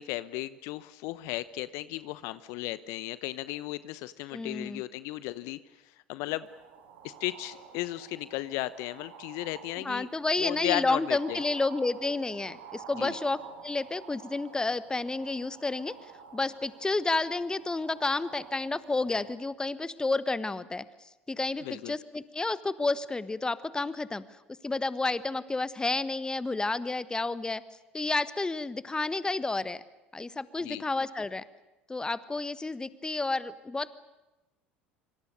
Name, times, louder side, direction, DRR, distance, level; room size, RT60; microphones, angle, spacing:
voice 1, 0.0-5.6 6.1-6.5 7.0-10.1 10.4-11.4 13.0-13.2 21.6-21.9 30.6-30.8, left 17 dB, 60° left, 16 dB, 1.0 m, -35 dB
voice 2, 4.3-4.8 9.8-15.9 16.3-20.8 21.3-24.2 24.6-27.6 27.9-29.8 30.1-31.4 31.9-34.0, left 3 dB, 15° left, 16 dB, 1.4 m, -30 dB
sound 1, 6.4-19.3, right 6 dB, 65° right, 5.8 m, -50 dB
26.5 x 25.5 x 6.7 m, 1.0 s
figure-of-eight pair, 70°, 6 cm